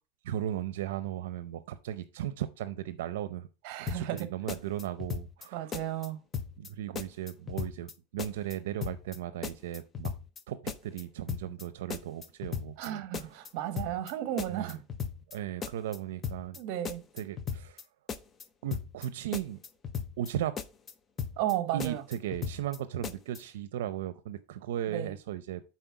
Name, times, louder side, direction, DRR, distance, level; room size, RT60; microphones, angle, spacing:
voice 1, 0.2-3.5 3.8-5.8 6.6-10.1 10.5-13.4 14.5-14.8 15.3-16.6 17.1-17.8 18.6-19.6 20.2-20.5 21.7-25.6, right 11 dB, 80° right, 0.5 m, -36 dB
voice 2, 3.6-4.3 5.5-6.2 12.8-14.8 16.6-17.0 21.4-22.0 24.9-25.1, right 12 dB, 45° right, 1.0 m, -34 dB
sound 1, 3.9-4.2 4.5-5.5 5.7-6.1 6.3-6.7 7.0-7.9 8.2-8.5 8.8-9.2 9.4-10.4 10.7-11.0 11.3-11.6 11.9-12.9 13.1-13.5 13.8-14.1 14.4-15.4 15.6-16.0 16.2-16.6 16.8-17.8 18.1-18.4 18.7-19.1 19.3-20.3 20.6-20.9 21.2-21.5 21.8-22.8 23.0-23.4, left 6 dB, 20° left, 0.5 m, -37 dB
7.9 x 4.3 x 4.7 m
supercardioid pair, 160°, 0 cm